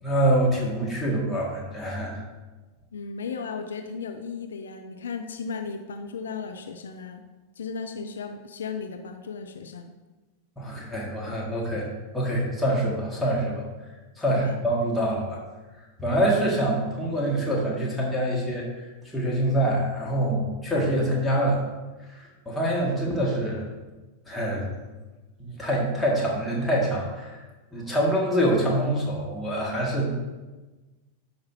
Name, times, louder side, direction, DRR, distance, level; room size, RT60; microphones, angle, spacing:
voice 1, 0.0-2.2 10.6-11.9 12.1-13.7 14.2-15.4 16.0-18.9 19.1-21.6 22.1-23.7 24.3-24.7 25.4-27.4 27.7-30.1, right 1 dB, 5° left, -5 dB, 2.1 m, -25 dB
voice 2, 2.9-7.2 7.6-9.9 14.3-14.6, left 5 dB, 65° left, 6 dB, 0.5 m, -35 dB
11.5 x 5.0 x 2.8 m, 1.2 s
figure-of-eight pair, 90°, 0 cm